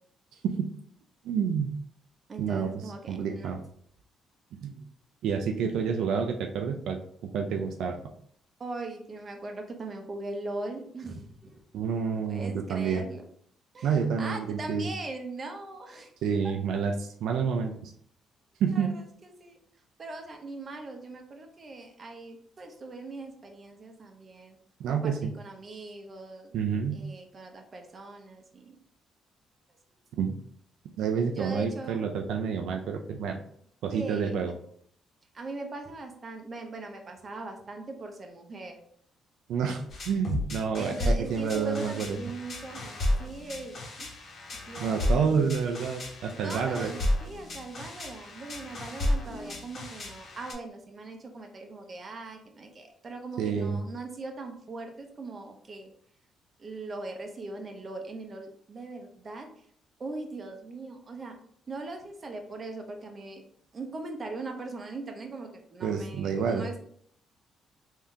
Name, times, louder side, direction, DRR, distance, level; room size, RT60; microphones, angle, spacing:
voice 1, 1.2-1.7 2.4-3.6 4.6-4.8 5.2-7.0 7.3-8.0 11.7-13.0 13.8-14.9 16.2-17.9 18.6-18.9 24.8-25.3 26.5-27.0 30.2-30.4 31.0-33.4 33.8-34.5 39.5-42.2 44.8-46.9 53.4-53.8 65.8-66.7, right 6 dB, 80° right, 3 dB, 0.4 m, -29 dB
voice 2, 2.3-3.5 8.6-11.6 12.3-13.2 13.7-16.1 18.7-19.6 20.0-24.6 24.9-26.5 26.9-28.8 31.3-32.0 33.9-34.3 35.3-38.8 40.8-44.1 44.5-45.2 46.4-55.9 56.6-59.5 60.0-61.4 61.7-63.4 63.7-66.8, right 2 dB, 40° right, 3 dB, 0.8 m, -40 dB
sound 1, 39.9-50.5, left 1 dB, 50° left, 1.1 m, -32 dB
3.6 x 2.7 x 3.3 m, 0.63 s
cardioid pair, 90°, 0 cm